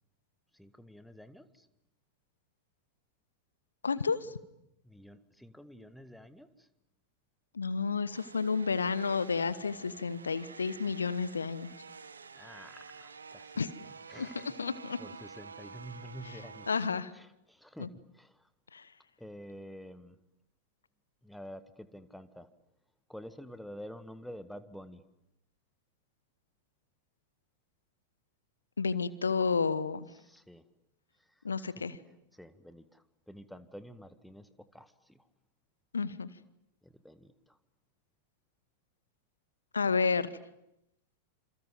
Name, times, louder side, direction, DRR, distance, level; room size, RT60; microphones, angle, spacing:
voice 1, 0.5-1.7 4.8-6.7 12.3-13.5 14.1-14.7 15.0-16.7 17.1-18.5 19.2-20.2 21.2-22.5 23.1-25.0 30.1-30.6 31.2-31.9 32.3-35.3 36.8-37.6, equal, ahead, 11 dB, 1.8 m, -49 dB
voice 2, 3.8-4.4 7.5-11.7 13.6-13.7 14.2-14.3 14.6-15.0 16.7-17.1 17.8-17.9 18.7-18.9 28.8-30.1 31.4-32.0 35.9-36.3 39.7-40.3, left 5 dB, 75° left, 16 dB, 1.2 m, -31 dB
sound 1, 8.1-16.9, right 5 dB, 75° right, 1.5 m, -49 dB
28.0 x 27.5 x 7.7 m, 0.84 s
figure-of-eight pair, 90°, 0 cm